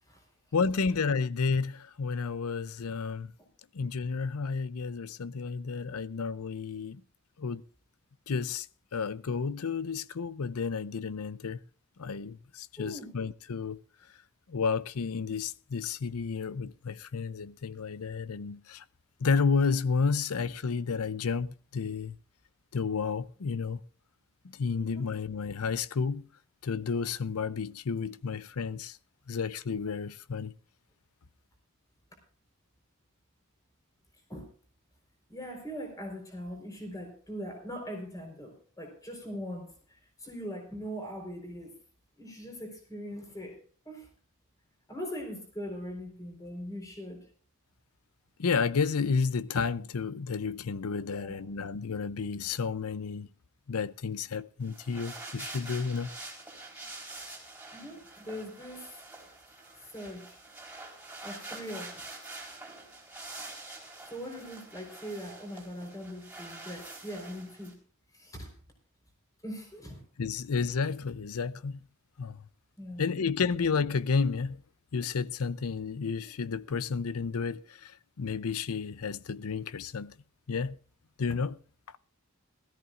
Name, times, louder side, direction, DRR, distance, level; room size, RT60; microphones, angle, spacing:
voice 1, 0.5-3.3 3.7-7.0 7.4-7.6 8.3-8.7 8.9-11.6 12.0-13.8 14.5-18.8 19.2-22.1 22.7-23.8 24.4-26.2 26.6-29.0 29.3-30.5 48.4-53.3 53.7-56.1 70.2-71.8 72.2-72.4 73.0-74.6 74.9-80.2 80.5-80.8 81.2-81.6, left 5 dB, 80° left, 0.6 m, -31 dB
voice 2, 12.8-13.1 24.7-25.1 34.3-34.5 35.3-41.7 42.2-43.6 43.9-44.1 44.9-47.2 51.1-51.4 57.7-58.9 59.8-60.4 61.2-62.0 64.1-67.7 68.1-68.5 69.4-70.0 72.8-73.1, equal, 15° left, 4.1 m, -41 dB
sound 1, 54.6-67.7, right 2 dB, 5° right, 3.8 m, -46 dB
19.5 x 14.0 x 2.5 m
head